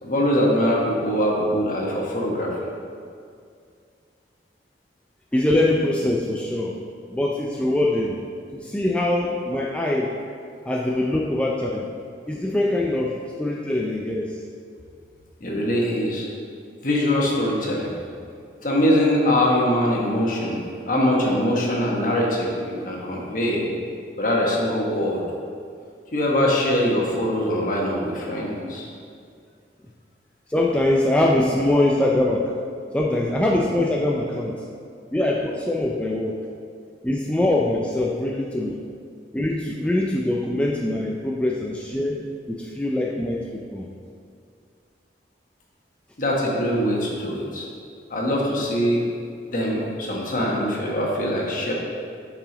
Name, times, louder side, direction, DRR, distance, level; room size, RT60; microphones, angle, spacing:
voice 1, 0.0-2.5 15.4-16.3 16.8-17.9 18.6-23.7 24.2-25.2 26.1-28.9 46.2-47.6 48.1-49.0 49.5-51.7, left 1 dB, 50° left, -2 dB, 1.1 m, -22 dB
voice 2, 5.3-6.8 7.1-8.2 8.6-10.2 10.7-11.9 12.3-14.4 30.5-32.5 32.9-34.6 35.1-36.4 37.0-38.8 39.3-43.9, left 1 dB, 5° left, -2 dB, 0.3 m, -23 dB
7.4 x 4.9 x 3.8 m, 2.3 s
head